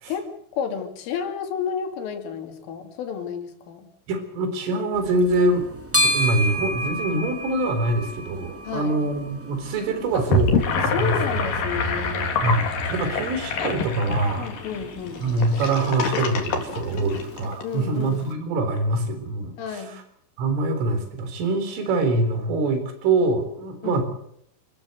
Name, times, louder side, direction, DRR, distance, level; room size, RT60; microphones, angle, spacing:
voice 1, 0.1-3.9 8.7-9.0 10.9-12.4 14.4-15.2 17.6-18.2 19.6-20.0 23.8-24.0, left 7 dB, 75° left, 6 dB, 5.3 m, -31 dB
voice 2, 4.1-5.6 5.9-11.2 12.4-14.5 15.2-19.8 20.4-24.0, right 2 dB, 75° right, 7 dB, 6.4 m, -24 dB
sound 1, 4.9-17.5, equal, 5° right, 1.1 m, -32 dB
Gurgling / Sink (filling or washing), 10.1-17.6, left 3 dB, 50° left, 3.9 m, -26 dB
29.0 x 14.0 x 7.9 m, 0.72 s
omnidirectional pair, 5.8 m